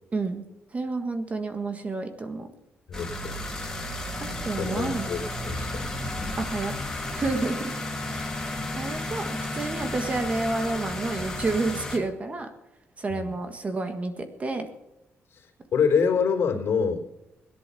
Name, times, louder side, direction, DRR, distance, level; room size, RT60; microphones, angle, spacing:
voice 1, 0.1-0.4 0.7-2.5 4.4-5.1 6.4-6.7 7.1-7.7 8.1-8.4 8.7-12.5 13.0-14.7, right 3 dB, 30° right, 7 dB, 1.7 m, -30 dB
voice 2, 2.9-3.4 4.5-5.8 13.1-13.3 15.3-17.0, left 6 dB, 65° left, 2 dB, 3.6 m, -26 dB
sound 1, 2.9-12.0, left 1 dB, 10° left, 3.2 m, -33 dB
17.0 x 11.0 x 7.0 m, 0.91 s
cardioid pair, 120°, 4 cm